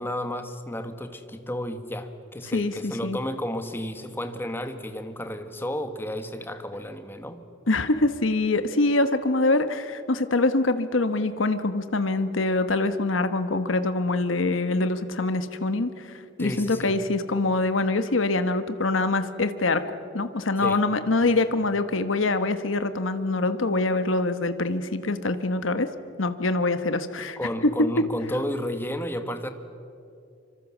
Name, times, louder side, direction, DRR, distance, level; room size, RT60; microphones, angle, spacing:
voice 1, 0.0-7.4 16.4-16.9 20.6-20.8 27.4-29.5, left 1 dB, 10° left, 8 dB, 1.5 m, -32 dB
voice 2, 2.5-3.2 7.7-19.8 20.1-25.9 26.2-27.4, left 2 dB, 85° left, 10 dB, 1.3 m, -24 dB
25.5 x 25.0 x 7.4 m, 2.6 s
head